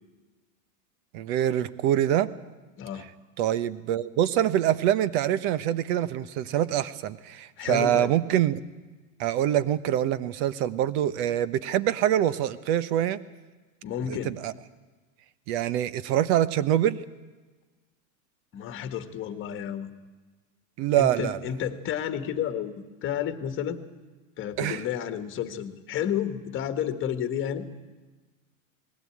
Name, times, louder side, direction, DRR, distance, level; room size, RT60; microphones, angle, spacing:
voice 1, 1.1-2.3 3.4-8.6 9.2-13.2 14.1-14.5 15.5-17.0 20.8-21.4 24.6-24.8, right 11 dB, 50° right, 16 dB, 1.1 m, -25 dB
voice 2, 7.6-8.1 13.8-14.3 18.5-19.9 21.0-23.8 24.4-27.7, left 9 dB, 30° left, 9 dB, 1.6 m, -31 dB
20.5 x 16.0 x 8.6 m, 1.3 s
supercardioid pair, 145°, 41 cm